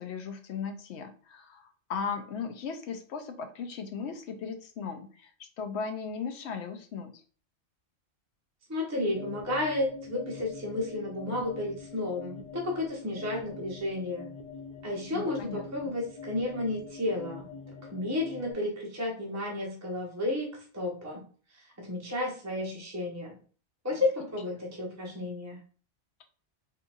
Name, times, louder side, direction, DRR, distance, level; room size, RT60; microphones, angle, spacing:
voice 1, 0.0-7.2 15.1-15.9 23.9-24.0, left 6 dB, 75° left, 7 dB, 0.8 m, -37 dB
voice 2, 8.7-14.3 14.8-21.2 21.8-23.3 23.8-25.6, left 2 dB, 20° right, -2 dB, 0.6 m, -32 dB
sound 1, 9.1-18.5, left 5 dB, 55° left, 0.4 m, -45 dB
3.8 x 2.7 x 2.4 m, 0.42 s
omnidirectional pair, 1.2 m